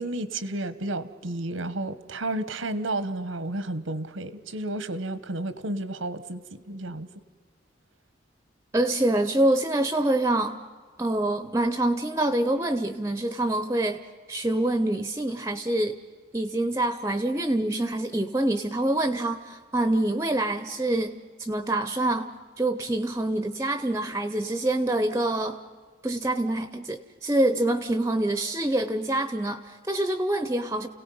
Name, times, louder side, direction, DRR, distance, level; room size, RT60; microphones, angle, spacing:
voice 1, 0.0-7.1, right 2 dB, 90° right, 13 dB, 1.1 m, -32 dB
voice 2, 8.7-10.6 11.0-14.0 14.3-16.0 16.3-21.1 21.4-22.3 22.6-25.6 26.0-30.9, right 1 dB, 15° right, 10 dB, 0.6 m, -26 dB
29.5 x 17.5 x 5.5 m, 1.5 s
head